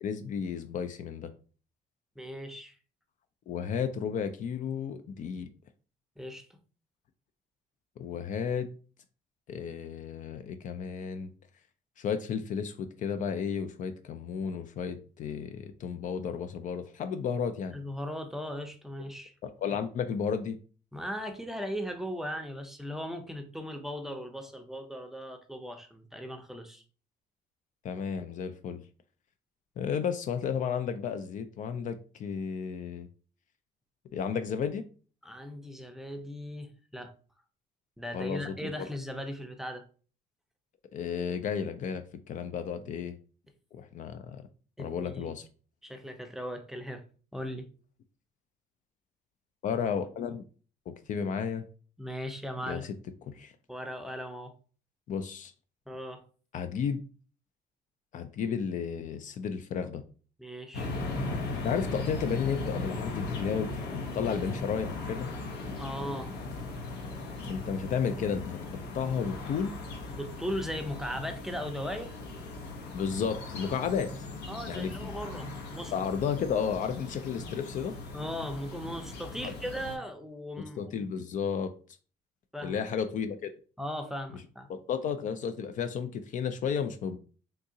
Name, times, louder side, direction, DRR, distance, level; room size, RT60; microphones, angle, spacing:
voice 1, 0.0-1.3 3.5-5.5 8.0-8.7 9.5-11.3 12.0-17.8 19.4-20.6 27.8-28.8 29.8-33.1 34.1-34.8 38.1-38.9 40.9-43.1 43.7-44.4 44.8-45.5 49.6-50.4 50.9-51.6 52.7-53.0 53.3-53.5 55.1-55.5 56.5-57.0 58.1-60.0 61.6-65.3 67.5-68.6 68.9-69.7 72.9-74.1 74.7-75.0 75.9-77.9 79.4-79.5 80.8-81.7 82.6-83.5 84.7-87.2, left 7 dB, 50° left, 9 dB, 0.4 m, -33 dB
voice 2, 2.2-2.7 6.2-6.6 17.7-19.3 20.9-26.8 35.2-37.1 38.0-39.8 42.8-42.9 44.8-45.4 45.8-47.0 47.3-47.7 52.0-52.9 53.7-54.5 55.9-56.2 60.4-60.9 65.8-66.5 70.1-72.2 74.5-75.9 78.1-81.1 82.5-82.8 83.8-84.7, equal, ahead, 6 dB, 0.5 m, -38 dB
sound 1, 60.7-80.0, left 3 dB, 75° left, 0.9 m, -38 dB
3.6 x 2.7 x 2.7 m, 0.39 s
cardioid pair, 110°, 17 cm